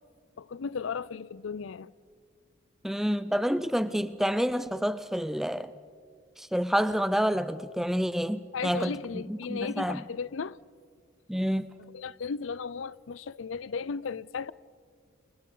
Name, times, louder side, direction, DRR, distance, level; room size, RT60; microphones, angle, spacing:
voice 1, 0.4-1.9 8.5-10.6 11.9-14.5, left 5 dB, 80° left, 0.5 m, -35 dB
voice 2, 2.8-5.7 6.4-9.0 9.3-10.0 11.3-11.7, equal, ahead, 0.5 m, -28 dB
29.0 x 29.0 x 3.9 m
head